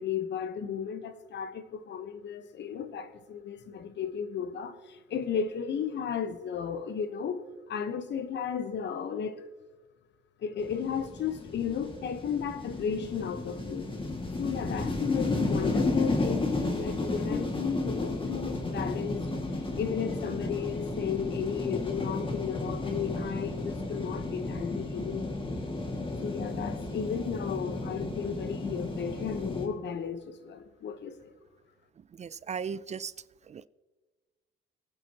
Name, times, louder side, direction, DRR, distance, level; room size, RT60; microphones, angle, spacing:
voice 1, 0.0-7.4 7.7-9.4 10.4-13.9 14.4-25.4 26.2-31.2, left 7 dB, 65° left, 1.0 m, -34 dB
sound 1, 10.6-29.7, left 2 dB, 25° left, 2.0 m, -33 dB
voice 2, 32.2-33.1 33.5-33.7, right 6 dB, 35° right, 0.4 m, -36 dB
23.0 x 9.0 x 2.9 m
cardioid pair, 90°, 20 cm